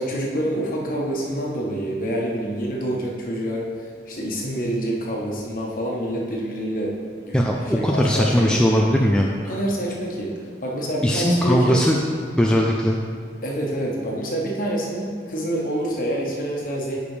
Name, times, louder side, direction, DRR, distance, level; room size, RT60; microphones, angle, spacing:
voice 1, 0.0-6.9 7.2-7.4 7.6-8.8 9.5-10.3 10.6-11.8 13.4-17.0, right 1 dB, 50° left, -3 dB, 1.3 m, -27 dB
voice 2, 7.3-9.3 11.0-12.0 12.4-13.0, equal, 5° left, -1 dB, 0.3 m, -19 dB
9.8 x 5.2 x 3.3 m, 2.1 s
head